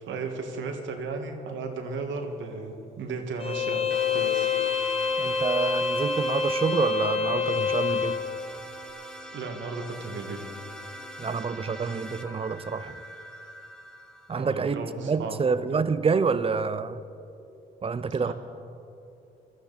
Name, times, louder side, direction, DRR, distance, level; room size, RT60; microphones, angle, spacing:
voice 1, 0.1-4.5 9.3-10.4 14.3-15.4 15.7-15.9 18.2-18.3, right 4 dB, 75° right, 1.8 m, -35 dB
Bowed string instrument, 3.4-8.2, left 5 dB, 30° left, 1.1 m, -26 dB
sound 1, 3.9-14.8, equal, 5° left, 1.4 m, -43 dB
voice 2, 5.2-8.2 11.2-13.0 14.3-17.0 17.8-18.3, right 5 dB, 30° right, 0.6 m, -27 dB
20.0 x 13.0 x 4.1 m
cardioid pair, 90°, 20 cm